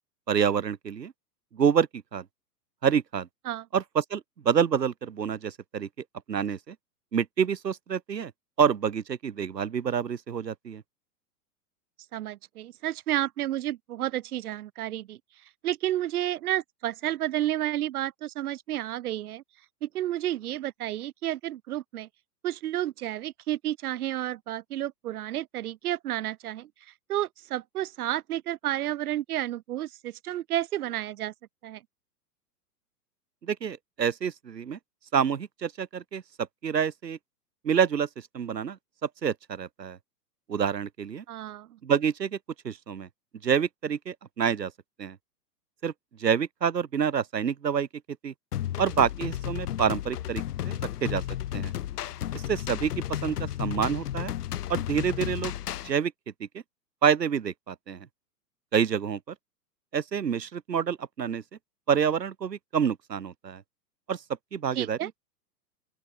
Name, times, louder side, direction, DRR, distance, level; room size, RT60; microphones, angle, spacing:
voice 1, 0.3-1.1 1.5-2.2 2.8-3.3 3.7-5.9 6.3-6.8 7.1-8.3 8.6-10.8 33.4-34.8 35.1-36.2 36.6-37.2 37.6-40.0 40.5-41.2 41.8-42.4 42.6-43.1 43.4-44.7 45.0-45.2 45.8-45.9 46.2-47.9 48.2-48.3 48.8-51.2 51.5-51.7 52.3-54.3 54.7-55.5 55.8-56.1 56.5-56.6 57.0-58.1 58.7-59.2 59.9-61.4 61.9-63.6 64.1-64.2 64.5-65.2, right 7 dB, 85° right, 2.2 m, -27 dB
voice 2, 12.1-15.2 15.6-19.4 19.8-22.1 22.4-26.7 27.1-31.3 31.6-31.8 41.3-41.8 64.8-65.1, right 13 dB, 65° right, 3.8 m, -31 dB
sound 1, 48.5-55.9, left 12 dB, 70° left, 2.2 m, -33 dB
open air
hypercardioid pair, 110°, 48 cm